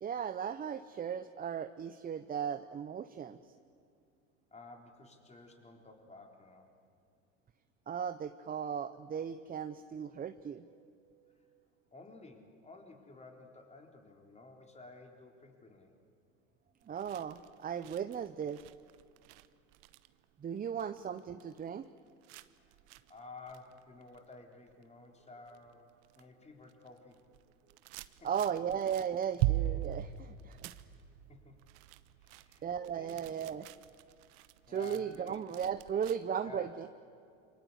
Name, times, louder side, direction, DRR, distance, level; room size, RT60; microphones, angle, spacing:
voice 1, 0.0-3.4 7.9-10.8 16.9-18.6 20.4-21.9 28.2-30.7 32.6-33.7 34.7-36.9, right 8 dB, 25° right, 10 dB, 0.8 m, -36 dB
voice 2, 4.5-6.7 11.3-11.4 11.9-15.9 22.6-22.7 23.1-27.2 28.2-28.3 31.3-31.6 32.2-33.2 34.3-35.4 36.4-36.7, left 3 dB, 15° left, 2 dB, 4.1 m, -53 dB
sound 1, 16.8-25.1 25.5-26.2 26.5-36.2, right 15 dB, 60° right, 1.1 m, -41 dB
27.5 x 24.5 x 8.2 m, 2.3 s
hypercardioid pair, 95°, 38 cm